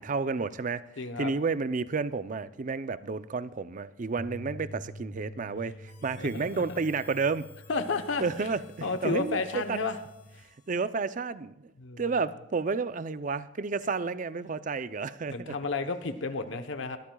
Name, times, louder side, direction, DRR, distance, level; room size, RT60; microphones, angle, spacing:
voice 1, 0.0-0.8 1.2-7.5 8.2-9.8 10.7-11.7 12.0-15.5, right 4 dB, 40° right, 0.5 m, -31 dB
voice 2, 1.0-1.3 6.2-6.6 7.7-8.2 8.8-10.0 11.8-12.0 15.3-17.0, left 4 dB, 80° left, 0.9 m, -31 dB
sound 1, 4.2-10.4, equal, 20° left, 1.7 m, -48 dB
Harmonica, 5.9-10.9, left 7 dB, 65° left, 2.9 m, -58 dB
22.5 x 13.5 x 2.3 m
head